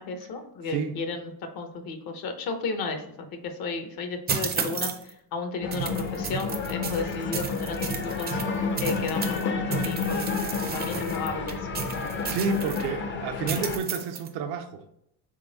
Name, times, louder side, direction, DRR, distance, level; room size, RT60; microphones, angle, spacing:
voice 1, 0.0-8.4 8.8-10.4 10.7-12.1, left 4 dB, 65° left, 0.8 m, -34 dB
sound 1, 4.3-5.1 5.7-9.4 9.7-12.9 13.5-14.3, right 6 dB, 25° right, 0.4 m, -33 dB
sound 2, 5.6-13.8, left 5 dB, 30° left, 0.5 m, -31 dB
voice 2, 12.3-14.8, right 5 dB, 80° right, 0.6 m, -30 dB
3.8 x 3.4 x 3.9 m
cardioid pair, 115°, 39 cm